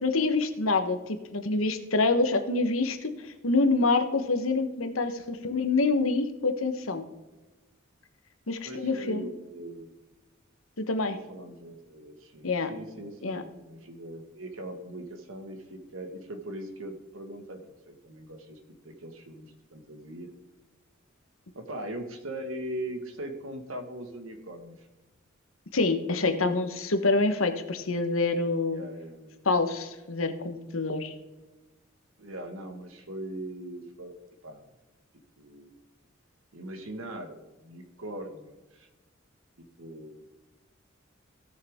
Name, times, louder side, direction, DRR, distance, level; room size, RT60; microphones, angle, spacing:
voice 1, 0.0-7.0 8.5-9.3 10.8-11.2 12.4-12.7 13.2-13.4 25.7-28.8 29.4-31.1, left 3 dB, 85° left, 8 dB, 1.2 m, -26 dB
voice 2, 8.6-9.9 11.0-20.3 21.5-24.9 26.2-26.6 28.7-29.4 32.2-34.1 34.4-34.7 35.4-35.8 36.5-38.9 39.6-40.2, right 1 dB, 85° right, 6 dB, 1.7 m, -41 dB
17.0 x 6.6 x 3.6 m, 1.1 s
head